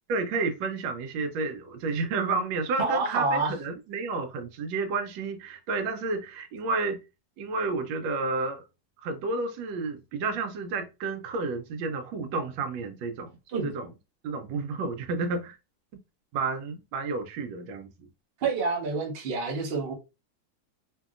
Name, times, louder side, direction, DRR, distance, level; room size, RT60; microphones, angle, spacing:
voice 1, 0.1-7.0 7.4-8.6 9.0-13.3 13.6-13.9 14.2-15.6 16.3-18.1, right 3 dB, 85° right, 1.3 m, -31 dB
voice 2, 2.8-3.5 13.5-13.7 18.4-19.9, right 4 dB, 65° right, 0.6 m, -28 dB
2.8 x 2.7 x 2.4 m
omnidirectional pair, 2.0 m